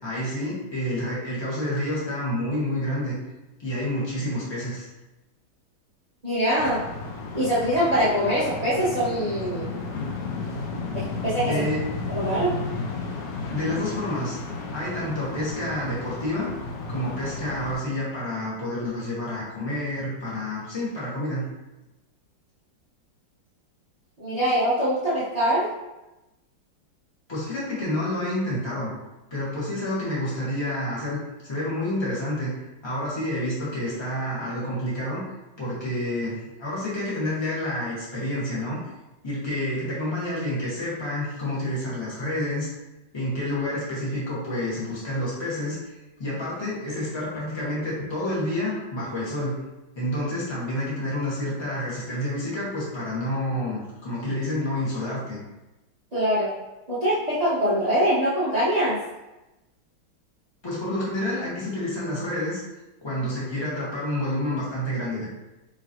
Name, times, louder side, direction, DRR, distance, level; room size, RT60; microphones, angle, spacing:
voice 1, 0.0-3.1 3.6-4.9 11.5-11.8 13.5-14.4 14.7-16.5 16.9-21.4 27.3-28.9 29.3-32.5 32.8-35.2 35.6-38.8 39.2-42.7 43.1-45.9 46.2-49.5 49.9-55.4 60.6-62.6 63.0-65.3, left 1 dB, 15° left, -7 dB, 1.0 m, -29 dB
voice 2, 6.2-6.8 7.3-9.7 10.9-11.6 12.1-12.5 24.2-25.7 56.1-56.5 56.9-59.0, equal, 40° right, -10 dB, 0.6 m, -23 dB
sound 1, 6.6-17.7, left 3 dB, 85° left, 0.8 m, -33 dB
5.0 x 3.0 x 2.8 m, 1.0 s
omnidirectional pair, 2.3 m